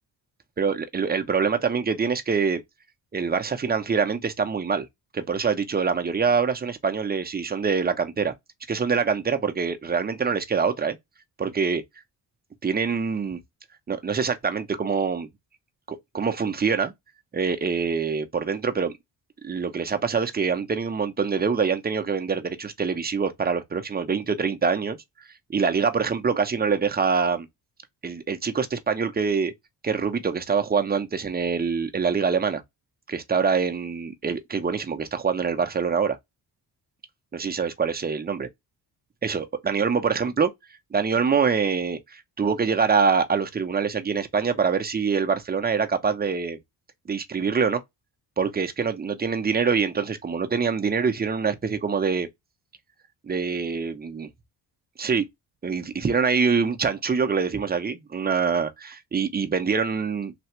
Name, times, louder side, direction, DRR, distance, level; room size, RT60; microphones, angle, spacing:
voice 1, 0.6-2.6 3.1-4.9 5.1-8.3 8.7-11.0 11.4-11.8 12.6-13.4 13.9-15.3 15.9-16.9 17.3-18.9 19.4-25.0 25.5-27.5 28.0-29.5 29.8-32.6 33.1-36.2 37.3-38.5 39.2-40.5 40.9-46.6 47.1-47.8 48.4-52.3 53.2-54.3 55.0-55.3 55.6-60.3, right 5 dB, 20° right, 0.6 m, -25 dB
3.4 x 2.3 x 2.8 m
cardioid pair, 90°, 43 cm